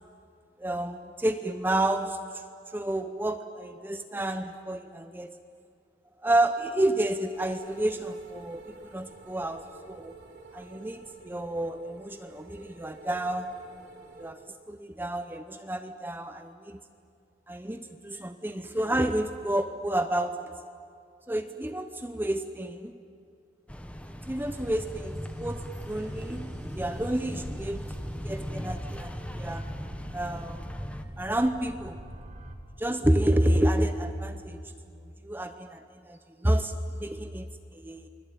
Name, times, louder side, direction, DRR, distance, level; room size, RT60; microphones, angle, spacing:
voice 1, 0.6-2.2 2.7-5.3 6.2-10.1 10.5-13.5 14.2-14.4 14.7-16.8 17.5-20.5 21.3-23.0 24.3-27.9 28.2-29.6 30.1-30.7 31.2-32.0 32.8-34.6 35.2-37.5 37.7-38.1, right 1 dB, 10° right, 7 dB, 0.8 m, -30 dB
sound 1, 7.3-14.3, right 3 dB, 70° right, 3.5 m, -50 dB
sound 2, 23.7-31.0, equal, 10° left, 1.4 m, -38 dB
sound 3, 24.4-32.5, equal, 45° right, 2.4 m, -44 dB
29.0 x 21.5 x 9.2 m, 2.5 s
head